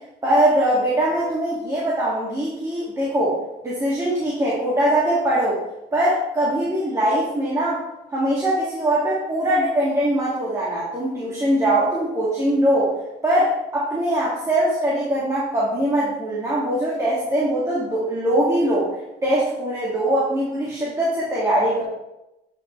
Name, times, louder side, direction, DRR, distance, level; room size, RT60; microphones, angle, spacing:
voice 1, 0.2-3.4 3.6-5.6 5.9-7.8 8.1-12.9 13.2-18.9 19.2-21.8, right 1 dB, 20° right, -7 dB, 2.6 m, -21 dB
9.6 x 5.7 x 3.5 m, 0.91 s
cardioid pair, 110°, 17 cm